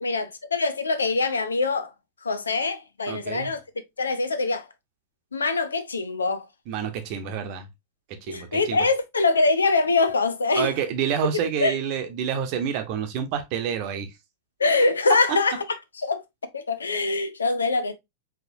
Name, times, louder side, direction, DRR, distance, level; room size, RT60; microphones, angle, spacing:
voice 1, 0.0-1.9 2.2-3.6 4.0-4.7 5.3-6.5 8.3-10.7 11.6-11.8 14.6-15.6 16.0-16.2 16.5-18.0, left 3 dB, 75° left, 0.6 m, -23 dB
voice 2, 3.1-3.5 6.7-7.7 8.2-8.9 10.5-14.1, right 8 dB, 45° right, 1.0 m, -28 dB
5.1 x 3.2 x 2.7 m
figure-of-eight pair, 90°, 0 cm